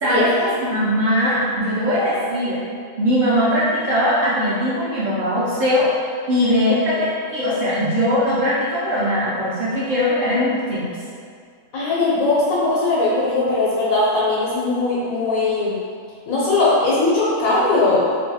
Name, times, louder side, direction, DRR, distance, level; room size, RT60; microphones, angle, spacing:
voice 1, 0.0-2.6 3.0-5.9 6.3-11.0, equal, 75° right, -10 dB, 0.4 m, -20 dB
voice 2, 11.7-15.7 16.3-18.1, left 2 dB, 90° left, -7 dB, 1.1 m, -19 dB
2.6 x 2.2 x 2.7 m, 2.2 s
omnidirectional pair, 1.5 m